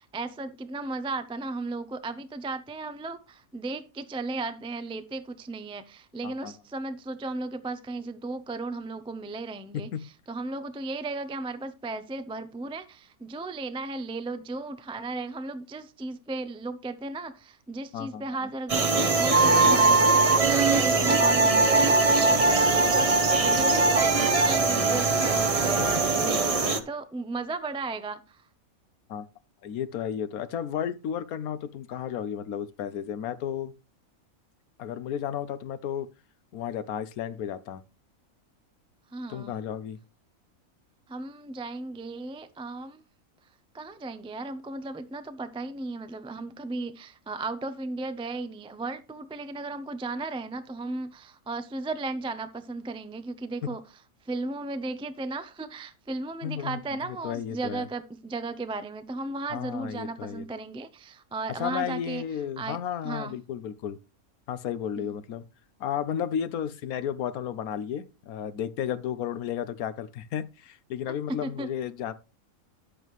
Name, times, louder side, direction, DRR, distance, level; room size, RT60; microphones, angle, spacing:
voice 1, 0.0-28.4 39.1-39.5 41.1-43.0 43.7-53.8 54.2-62.2 62.6-62.8 63.0-63.4 65.0-65.2 71.3-71.7, right 3 dB, 10° right, 0.4 m, -35 dB
voice 2, 6.2-6.6 9.7-10.0 17.9-18.5 23.5-23.8 29.1-29.3 29.6-33.7 34.8-36.1 36.5-37.8 39.3-40.0 53.6-53.7 56.4-57.9 59.5-60.5 61.5-64.0 64.5-65.4 65.8-72.1, left 9 dB, 85° left, 1.2 m, -33 dB
sound 1, 18.7-26.8, right 3 dB, 30° right, 0.8 m, -21 dB
10.5 x 8.2 x 3.1 m
omnidirectional pair, 1.5 m